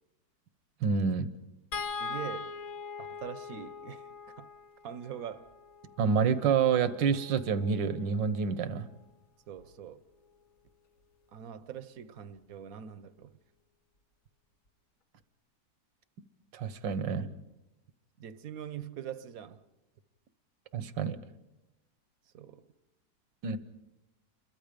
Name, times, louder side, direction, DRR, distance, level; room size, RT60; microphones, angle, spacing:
voice 1, 0.8-1.3 6.0-8.9 16.5-17.3 20.7-21.2 23.4-23.6, right 6 dB, 85° right, 1.7 m, -28 dB
sound 1, 1.7-8.0 9.6-9.7 10.1-10.2, left 5 dB, 50° left, 1.5 m, -42 dB
voice 2, 2.0-2.5 3.0-4.1 4.4-4.5 4.8-5.5 9.5-10.0 11.3-13.4 17.1-17.4 18.2-19.6 22.3-22.6, right 9 dB, 55° right, 1.2 m, -43 dB
29.0 x 22.5 x 5.2 m
omnidirectional pair, 1.9 m